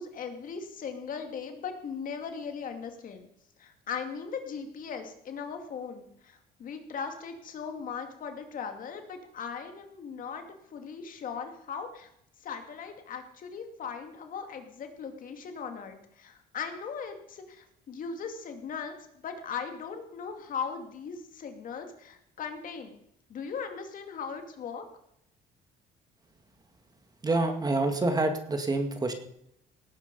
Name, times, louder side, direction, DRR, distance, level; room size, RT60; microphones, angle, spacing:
voice 1, 0.0-3.3 3.6-10.4 10.7-12.1 12.4-18.9 19.2-22.9 23.3-24.8, left 6 dB, 55° left, 5 dB, 2.4 m, -38 dB
voice 2, 27.2-29.1, right 2 dB, 20° right, 6 dB, 2.0 m, -27 dB
18.0 x 9.7 x 5.4 m, 0.75 s
cardioid pair, 110°, 17 cm